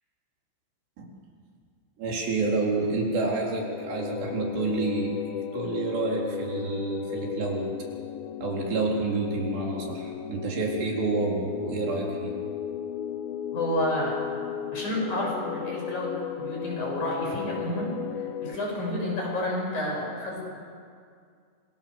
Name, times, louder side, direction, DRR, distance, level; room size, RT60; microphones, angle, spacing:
voice 1, 2.0-7.7 8.4-12.4, right 3 dB, 75° right, -1 dB, 6.0 m, -29 dB
sound 1, 3.6-18.6, left 9 dB, 75° left, 2.4 m, -35 dB
voice 2, 13.5-14.2 14.7-17.9 18.2-20.4, left 1 dB, 45° left, -3 dB, 8.9 m, -30 dB
27.5 x 26.0 x 7.2 m, 2.2 s
omnidirectional pair, 4.9 m